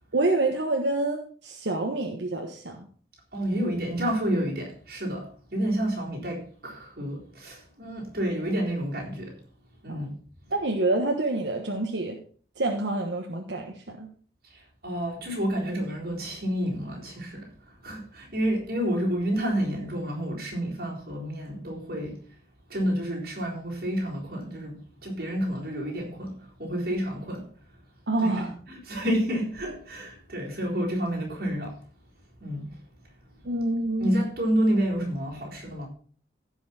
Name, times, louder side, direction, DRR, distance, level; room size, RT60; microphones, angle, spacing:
voice 1, 0.1-2.9 9.9-10.0 10.5-12.2 12.6-14.1 28.1-28.5 33.4-34.1, right 2 dB, 90° right, 1.3 m, -27 dB
voice 2, 3.3-9.4 9.8-10.1 14.5-17.5 17.8-22.2 22.7-27.4 28.2-31.8 32.4-32.8 34.0-35.9, equal, 55° right, 3.9 m, -29 dB
15.5 x 5.6 x 4.3 m
head